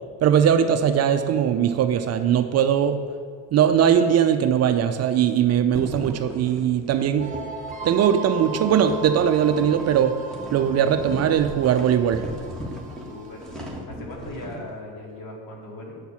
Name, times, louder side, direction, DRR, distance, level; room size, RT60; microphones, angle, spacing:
voice 1, 0.2-3.0 3.5-7.3 7.8-10.1 10.5-12.2, right 9 dB, 35° right, 8 dB, 0.5 m, -20 dB
sound 1, 5.7-14.7, equal, ahead, 1.2 m, -37 dB
sound 2, 7.2-13.8, right 4 dB, 15° right, 1.4 m, -38 dB
voice 2, 13.1-13.4 13.9-16.0, left 2 dB, 70° left, -2 dB, 2.5 m, -38 dB
8.1 x 4.6 x 6.9 m, 2.1 s
supercardioid pair, 115°, 44 cm